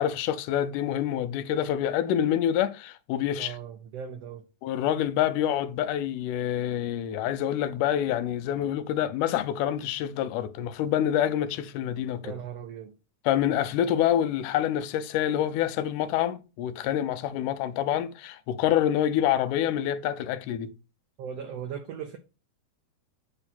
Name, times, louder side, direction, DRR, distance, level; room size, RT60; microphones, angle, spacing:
voice 1, 0.0-3.6 4.6-12.3 13.3-20.7, left 11 dB, 90° left, 2.1 m, -27 dB
voice 2, 3.3-4.5 12.2-12.9 21.2-22.2, right 8 dB, 90° right, 1.4 m, -38 dB
8.7 x 2.9 x 4.1 m
omnidirectional pair, 3.6 m